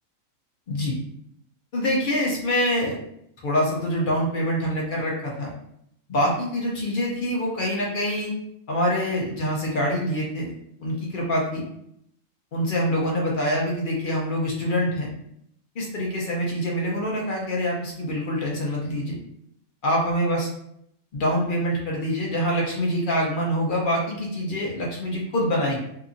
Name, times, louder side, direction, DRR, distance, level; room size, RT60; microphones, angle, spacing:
voice 1, 1.7-3.0 3.4-5.5 6.1-8.3 8.7-10.5 10.8-11.6 12.5-15.1 15.8-19.2 19.8-20.5 21.1-25.8, equal, 55° left, -2 dB, 0.6 m, -25 dB
2.8 x 2.4 x 2.5 m, 0.74 s
omnidirectional pair, 1.4 m